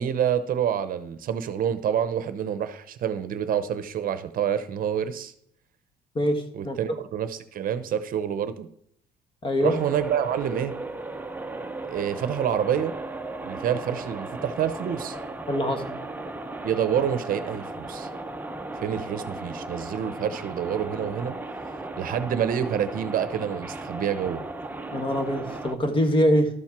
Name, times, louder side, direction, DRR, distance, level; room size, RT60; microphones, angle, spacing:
voice 1, 0.0-5.3 6.5-8.7 9.6-10.7 11.9-12.9 13.4-15.2 16.6-18.1 18.8-21.4 22.0-24.4, right 9 dB, 55° right, 11 dB, 0.8 m, -27 dB
voice 2, 6.1-6.8 9.4-9.8 15.5-16.0 24.9-26.5, equal, 30° left, 6 dB, 1.5 m, -23 dB
sound 1, 9.6-25.7, right 2 dB, 10° right, 0.7 m, -36 dB
12.5 x 4.4 x 6.0 m, 0.70 s
cardioid pair, 110°, 17 cm